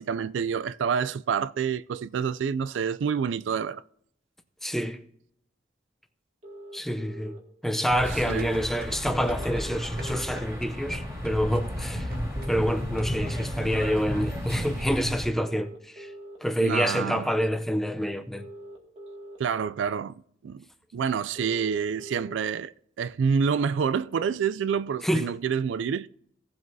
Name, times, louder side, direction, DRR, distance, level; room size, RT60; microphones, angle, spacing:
voice 1, 0.0-3.8 8.3-8.5 16.6-17.3 19.4-20.6 20.9-26.1, right 6 dB, 80° right, 0.3 m, -28 dB
voice 2, 4.6-5.0 6.7-7.3 7.6-12.1 12.5-16.1 16.4-18.5 25.0-25.2, equal, ahead, 0.6 m, -27 dB
sound 1, 6.4-7.4 9.4-10.4 12.4-13.4 15.4-16.4 18.4-19.4 21.4-22.4, right 1 dB, 35° right, 2.1 m, -43 dB
sound 2, 7.9-15.3, equal, 15° right, 3.5 m, -33 dB
sound 3, 8.3-13.3 13.6-13.7, right 2 dB, 55° right, 1.4 m, -43 dB
17.0 x 7.6 x 2.7 m
head